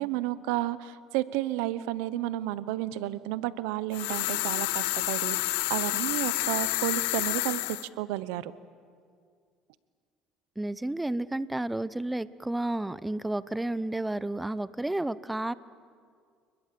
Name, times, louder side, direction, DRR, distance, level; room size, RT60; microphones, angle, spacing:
voice 1, 0.0-8.5, right 15 dB, 85° right, 16 dB, 0.8 m, -32 dB
sound 1, 3.9-7.9, left 22 dB, 90° left, 0.5 m, -29 dB
voice 2, 10.6-15.5, right 1 dB, 10° right, 17 dB, 0.6 m, -31 dB
29.5 x 21.0 x 7.6 m, 2.1 s
supercardioid pair, 105°, 0 cm